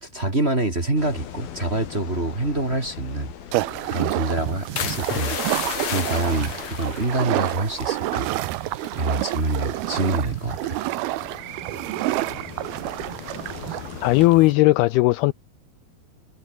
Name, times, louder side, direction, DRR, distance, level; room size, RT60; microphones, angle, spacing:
voice 1, 0.0-3.3 3.8-5.4 5.9-8.3 8.9-10.8, right 2 dB, 15° right, 2.7 m, -26 dB
sound 1, 1.0-14.3, left 9 dB, 65° left, 4.0 m, -42 dB
sound 2, 3.5-14.5, right 18 dB, 80° right, 2.5 m, -29 dB
sound 3, 4.8-8.5 8.8-9.1 9.6-9.9, left 8 dB, 45° left, 3.1 m, -32 dB
voice 2, 14.0-15.3, left 20 dB, 80° left, 2.3 m, -17 dB
omnidirectional pair, 4.9 m